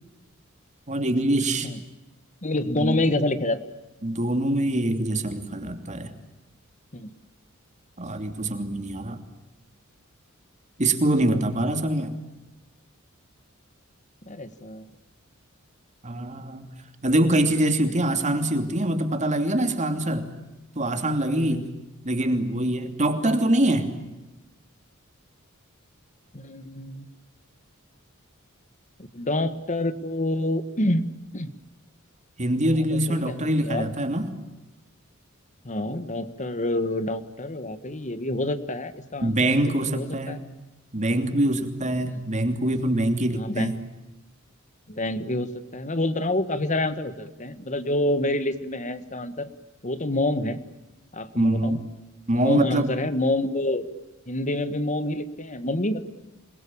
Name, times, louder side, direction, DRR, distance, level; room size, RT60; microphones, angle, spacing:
voice 1, 0.9-1.7 2.8-3.0 4.0-6.1 8.0-9.2 10.8-12.2 16.0-16.7 17.0-20.3 20.8-21.6 22.0-23.9 32.4-34.3 39.2-40.4 40.9-43.8 51.4-51.8 52.3-52.9, right 1 dB, 35° right, 7 dB, 2.9 m, -24 dB
voice 2, 2.4-3.6 6.9-7.1 14.2-14.8 21.4-21.7 26.3-27.1 29.1-31.1 31.3-31.5 32.8-33.3 33.6-33.9 35.6-39.4 39.6-40.4 42.1-42.2 43.3-43.7 44.9-49.5 49.8-50.6 51.1-51.8 52.3-53.9 54.3-56.1, left 1 dB, 35° left, 12 dB, 1.7 m, -27 dB
27.5 x 21.5 x 8.7 m, 1.0 s
head